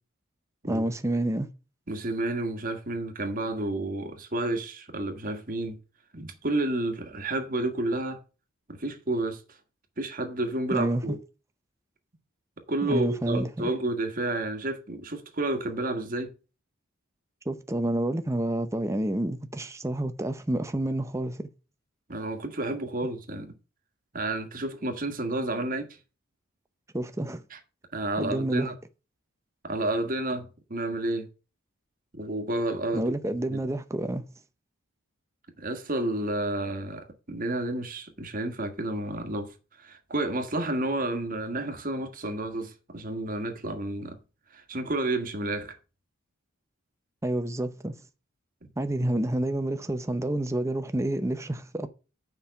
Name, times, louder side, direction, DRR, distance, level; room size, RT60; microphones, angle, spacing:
voice 1, 0.7-1.5 10.7-11.0 12.8-13.7 17.5-21.5 26.9-27.4 28.2-28.7 32.9-34.2 47.2-48.0 48.8-51.9, right 1 dB, 15° right, 0.6 m, -29 dB
voice 2, 1.9-5.8 6.1-8.2 8.7-9.4 10.0-11.2 12.7-16.3 22.1-23.5 24.1-26.0 27.9-28.7 29.6-31.3 32.1-33.0 33.5-33.6 35.6-44.2 44.5-45.8 49.0-49.2, right 2 dB, 40° right, 1.5 m, -30 dB
7.0 x 5.5 x 7.3 m
head